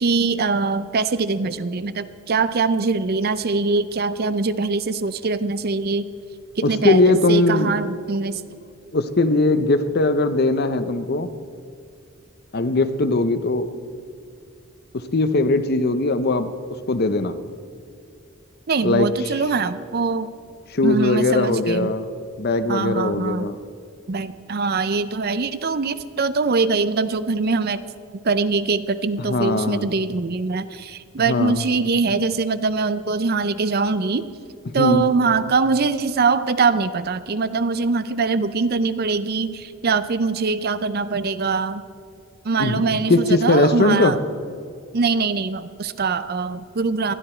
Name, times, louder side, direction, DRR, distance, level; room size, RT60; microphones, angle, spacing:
voice 1, 0.0-6.1 6.6-8.4 18.7-20.3 20.8-21.9 22.7-23.5 24.1-27.8 28.2-34.3 34.7-41.8 42.4-44.2 44.9-47.1, right 4 dB, 45° right, 13 dB, 0.5 m, -22 dB
voice 2, 6.6-7.8 8.9-11.3 12.5-13.7 14.9-16.5 16.9-17.4 18.8-19.1 20.7-22.0 22.4-23.6 29.2-29.9 31.3-31.6 34.7-35.1 42.6-42.8 43.1-44.1, left 2 dB, 45° left, 11 dB, 0.7 m, -20 dB
20.0 x 13.0 x 4.4 m, 2.3 s
head